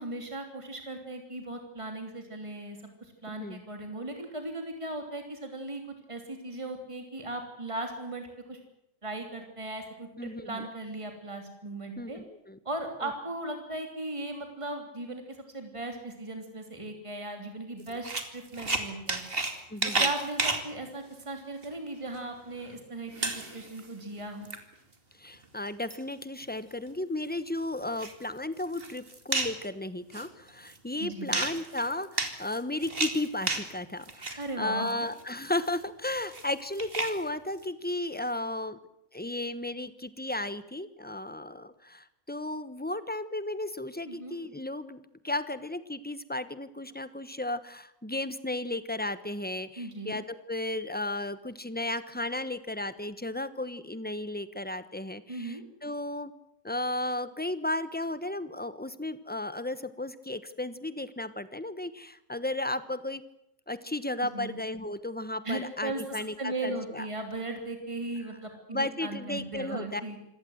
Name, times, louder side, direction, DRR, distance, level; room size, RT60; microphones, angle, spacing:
voice 1, 0.0-5.8 6.1-8.6 9.0-12.2 12.6-15.2 15.5-18.1 18.3-19.2 20.0-24.5 31.0-31.3 34.4-35.1 44.1-44.4 49.8-50.1 55.3-55.6 64.2-64.5 65.4-70.2, right 2 dB, 25° right, 4 dB, 3.2 m, -37 dB
voice 2, 10.2-10.7 12.0-12.6 13.0-13.1 19.7-20.1 25.2-38.8 39.1-56.3 56.6-63.2 63.7-67.1 68.7-70.0, left 1 dB, 10° left, 13 dB, 1.0 m, -34 dB
sound 1, 17.9-19.5 19.8-20.6 21.6-21.7 22.1-22.2 22.7-22.8 23.1-23.9 24.2-24.6 25.4-26.0 26.4-26.5 26.9-27.0 27.8-28.2 28.6-29.7 30.1-30.8 31.3-33.7 34.0-34.5 34.9-37.2, right 3 dB, 45° right, 2.6 m, -31 dB
26.0 x 17.5 x 7.9 m, 0.81 s
omnidirectional pair, 1.4 m